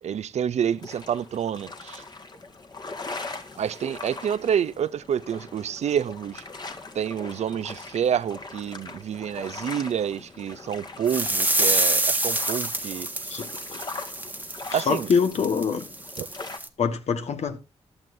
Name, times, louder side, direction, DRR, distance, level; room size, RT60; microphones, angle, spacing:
voice 1, 0.0-2.0 3.6-6.4 6.9-13.1 14.7-15.1 16.2-16.3, right 8 dB, 75° right, 0.5 m, -28 dB
sound 1, 0.6-16.6, left 3 dB, 40° left, 1.7 m, -41 dB
sound 2, 11.1-16.7, right 2 dB, 15° right, 1.2 m, -27 dB
voice 2, 13.2-13.8 14.7-15.8 16.8-17.6, left 6 dB, 75° left, 1.5 m, -25 dB
15.0 x 11.0 x 2.7 m
cardioid pair, 75°, 11 cm